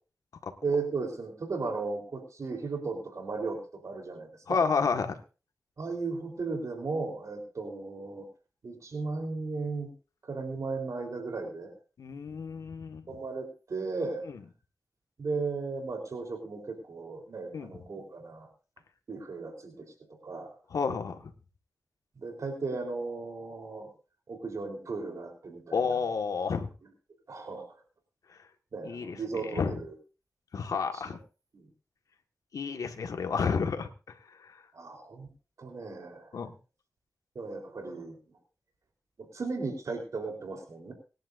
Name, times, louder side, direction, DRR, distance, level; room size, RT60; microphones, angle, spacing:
voice 1, 0.6-4.7 5.8-8.3 8.6-9.9 10.2-11.7 13.1-14.2 15.2-18.5 19.1-19.9 20.2-20.6 22.2-23.9 24.3-26.0 27.3-27.8 28.7-29.9 30.9-31.2 31.5-31.6 34.7-35.3 35.6-36.4 37.4-38.2 39.2-40.9, right 4 dB, 65° right, 2 dB, 3.8 m, -36 dB
voice 2, 4.5-5.2 12.0-13.0 17.5-17.7 20.7-21.2 25.7-26.7 28.8-29.2 29.5-29.8 30.5-31.2 32.5-33.9 36.3-36.5, left 5 dB, 85° left, 6 dB, 1.6 m, -30 dB
25.0 x 10.5 x 2.6 m, 0.34 s
cardioid pair, 65°, 6 cm